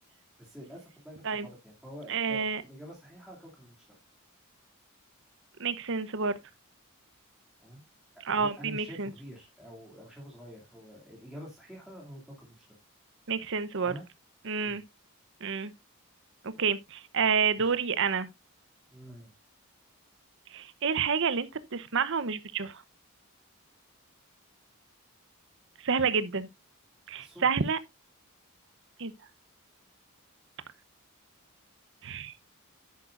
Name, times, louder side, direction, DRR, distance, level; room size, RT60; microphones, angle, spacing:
voice 1, 0.4-3.8 7.6-7.8 8.3-12.6 13.8-14.0 14.6-14.8 17.6-17.7 18.9-19.3 27.2-27.5, equal, 5° right, 2.5 m, -47 dB
voice 2, 2.1-2.6 5.6-6.4 8.3-9.1 13.3-13.9 14.4-14.8 15.4-15.7 16.4-18.3 20.5-22.8 25.8-26.5 27.1-27.8 29.0-29.1 32.0-32.3, right 5 dB, 60° right, 0.8 m, -29 dB
10.5 x 8.8 x 2.5 m
head